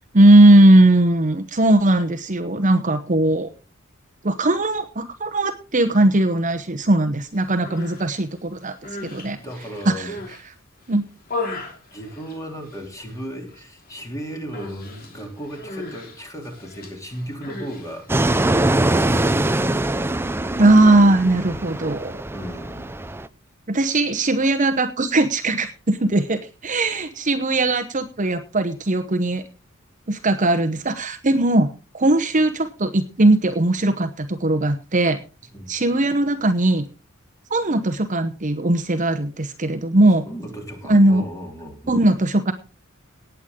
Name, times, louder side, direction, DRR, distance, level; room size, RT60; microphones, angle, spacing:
voice 1, 0.1-3.5 4.2-8.8 9.0-9.4 9.9-10.1 10.9-11.0 20.6-22.2 23.7-29.4 30.1-31.7 31.9-35.2 35.7-36.8 37.5-40.2 40.9-41.2 41.9-42.5, right 1 dB, 35° right, 0.9 m, -18 dB
Human voice, 7.4-8.1 8.6-10.4 10.9-12.9 13.1-13.6 13.8-14.1 14.5-18.2, left 2 dB, 45° left, 3.2 m, -36 dB
voice 2, 9.4-10.2 11.9-19.9 22.3-23.0 35.5-35.8 40.2-42.0, equal, 15° left, 3.3 m, -36 dB
Fixed-wing aircraft airplane, 18.1-23.3, right 1 dB, 10° right, 0.5 m, -23 dB
18.5 x 8.2 x 3.7 m
head